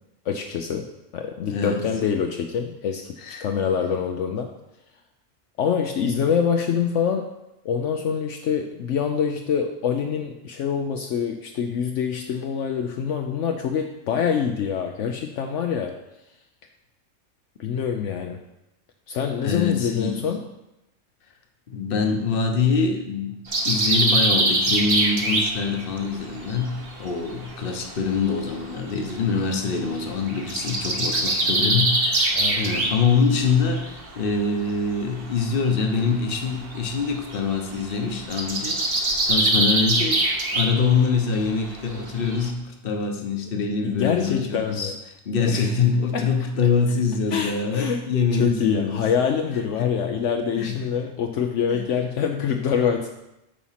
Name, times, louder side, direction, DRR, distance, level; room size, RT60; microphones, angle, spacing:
voice 1, 0.3-0.9 1.1-4.5 5.6-7.3 7.6-16.0 17.6-18.4 19.1-20.4 31.6-31.9 32.3-32.6 43.8-44.9 45.5-45.8 46.1-46.3 47.3-48.0 48.3-53.1, left 7 dB, 70° left, 4 dB, 1.0 m, -25 dB
voice 2, 1.5-1.9 3.2-3.5 19.4-20.2 21.7-23.4 23.6-44.9 45.2-49.1 49.5-50.2 50.6-50.8 51.7-51.9, left 5 dB, 50° left, 4 dB, 1.1 m, -24 dB
sound 1, 23.5-27.8 28.1-34.3 34.6-42.5, right 2 dB, 50° right, 1.3 m, -24 dB
9.1 x 4.3 x 5.7 m, 0.90 s
omnidirectional pair, 1.3 m